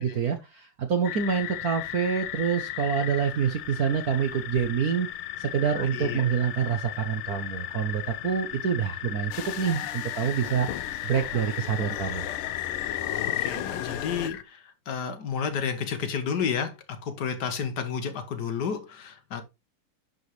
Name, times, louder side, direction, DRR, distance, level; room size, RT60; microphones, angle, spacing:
voice 1, 0.0-5.1 5.4-12.3, right 7 dB, 55° right, 1.1 m, -27 dB
sound 1, 1.0-14.4, left 13 dB, 70° left, 1.2 m, -35 dB
voice 2, 5.7-6.2 13.2-19.4, left 6 dB, 55° left, 1.6 m, -31 dB
sound 2, 9.3-14.3, left 10 dB, 85° left, 1.6 m, -37 dB
11.0 x 5.2 x 3.2 m
omnidirectional pair, 2.4 m